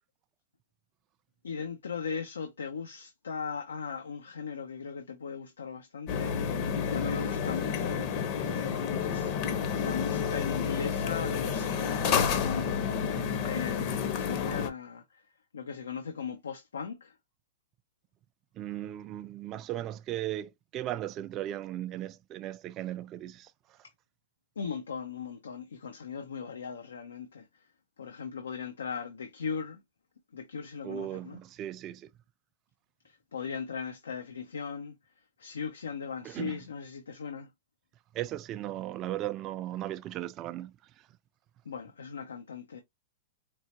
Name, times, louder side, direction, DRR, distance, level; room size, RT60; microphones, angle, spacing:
voice 1, 1.4-8.0 8.4-12.9 13.4-15.2 15.5-17.1 24.6-27.7 28.0-29.8 30.3-31.4 33.0-34.9 35.4-37.5 41.7-42.8, left 6 dB, 90° left, 0.6 m, -38 dB
sound 1, 6.1-14.7, left 7 dB, 45° left, 0.8 m, -30 dB
voice 2, 18.6-23.8 30.8-32.1 36.2-36.6 38.1-41.1, right 13 dB, 35° right, 0.3 m, -37 dB
4.5 x 2.1 x 2.9 m
hypercardioid pair, 120°, 0 cm